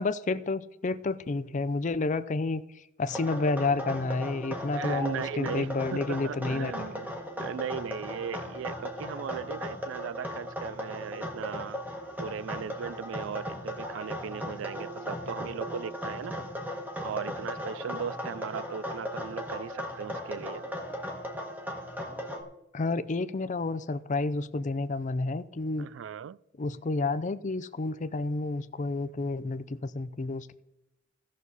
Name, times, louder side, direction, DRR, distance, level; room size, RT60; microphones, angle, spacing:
voice 1, 0.0-2.6 3.0-6.7 22.7-25.9 26.6-30.5, left 3 dB, 40° left, 0.5 m, -30 dB
sound 1, 3.1-22.4, equal, 10° right, 1.3 m, -37 dB
voice 2, 4.7-11.8 12.2-16.4 17.0-20.6 25.8-26.4, right 7 dB, 75° right, 0.3 m, -38 dB
16.5 x 6.3 x 4.1 m
head